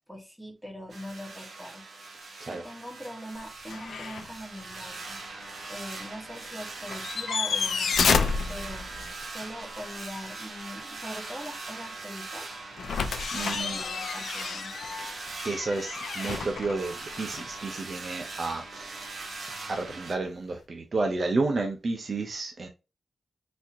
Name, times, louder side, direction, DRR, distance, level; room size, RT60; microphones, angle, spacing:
voice 1, 0.1-1.9 2.5-5.2 5.7-12.5 13.4-14.7, equal, ahead, 1.2 m, -42 dB
sound 1, 0.9-20.1, right 3 dB, 60° right, 1.3 m, -41 dB
sound 2, 3.7-4.3 4.7-4.8 6.9-9.2 12.8-17.6 19.7-19.8, left 6 dB, 85° left, 0.5 m, -30 dB
voice 2, 13.3-13.8 15.0-19.1 19.7-22.7, right 3 dB, 45° right, 0.7 m, -31 dB
4.1 x 2.9 x 2.5 m
wide cardioid pair, 115°, 0 cm